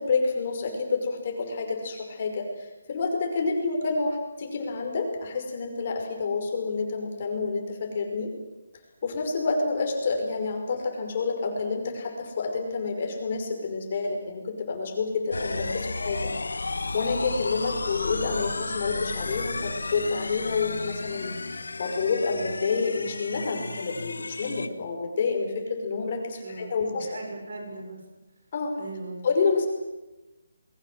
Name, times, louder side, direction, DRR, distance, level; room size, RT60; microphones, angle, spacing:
voice 1, 0.0-8.3 9.0-16.3 16.6-27.1 28.5-28.8 29.2-29.7, left 4 dB, 30° left, 3 dB, 5.5 m, -28 dB
sound 1, 15.3-24.7, left 3 dB, 90° left, 1.8 m, -33 dB
voice 2, 26.4-28.0 28.7-29.2, right 3 dB, 50° right, 3 dB, 6.8 m, -39 dB
29.0 x 22.0 x 7.7 m, 1.0 s
hypercardioid pair, 175°, 0 cm